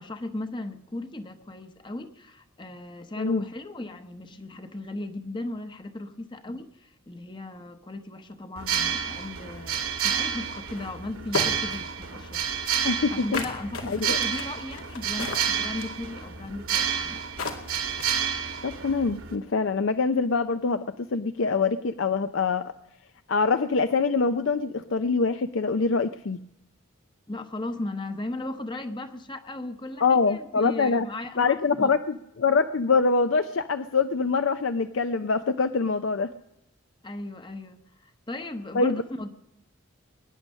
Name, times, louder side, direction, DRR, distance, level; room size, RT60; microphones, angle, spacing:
voice 1, 0.0-12.4 13.1-17.2 27.3-31.9 37.0-39.3, left 2 dB, 20° left, 0.9 m, -37 dB
sound 1, 8.6-19.4, right 8 dB, 85° right, 2.0 m, -30 dB
sound 2, 10.8-10.9 11.3-11.8 13.3-16.0 17.0-17.1 17.4-18.2, left 3 dB, 85° left, 2.2 m, -32 dB
voice 2, 12.8-13.4 13.9-14.2 18.6-22.7 23.3-26.4 30.0-31.1 31.4-32.0 32.4-36.3 38.7-39.0, left 4 dB, 65° left, 0.5 m, -24 dB
21.5 x 9.8 x 6.4 m
head